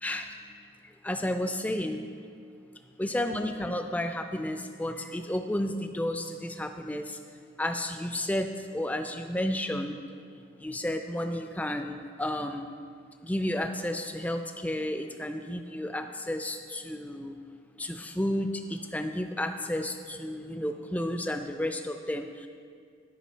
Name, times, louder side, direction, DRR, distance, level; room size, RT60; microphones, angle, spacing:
voice 1, 0.0-0.3 1.0-2.0 3.0-7.2 7.6-10.0 10.6-12.7 13.2-17.3 17.8-22.5, left 1 dB, 10° left, 7 dB, 0.3 m, -32 dB
11.0 x 5.8 x 4.4 m, 2.2 s
head